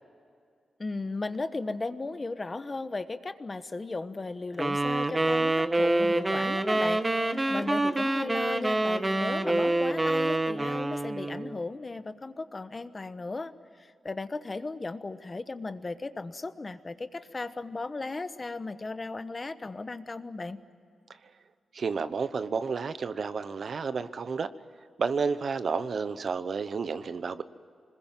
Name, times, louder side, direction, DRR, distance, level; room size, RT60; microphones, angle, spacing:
voice 1, 0.8-20.6, left 3 dB, 30° left, 11 dB, 1.1 m, -36 dB
sound 1, 4.6-11.5, right 2 dB, 20° right, 1.2 m, -27 dB
voice 2, 21.7-24.5 25.0-27.4, right 5 dB, 60° right, 12 dB, 1.0 m, -31 dB
25.5 x 21.0 x 9.2 m, 2.4 s
cardioid pair, 95°, 0 cm